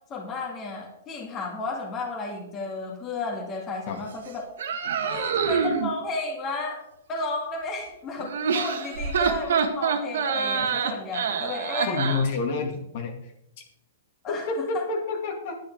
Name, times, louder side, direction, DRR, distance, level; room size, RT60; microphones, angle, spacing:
voice 1, 0.1-4.5 5.0-6.8 7.1-12.0 14.2-14.9, left 3 dB, 20° left, 0 dB, 2.1 m, -33 dB
angry noises, 4.6-5.9 8.2-12.2, right 6 dB, 75° right, 1.7 m, -26 dB
voice 2, 11.9-13.3 14.3-15.6, left 4 dB, 40° left, 2 dB, 2.1 m, -28 dB
10.5 x 10.0 x 4.7 m, 0.80 s
hypercardioid pair, 165°, 0 cm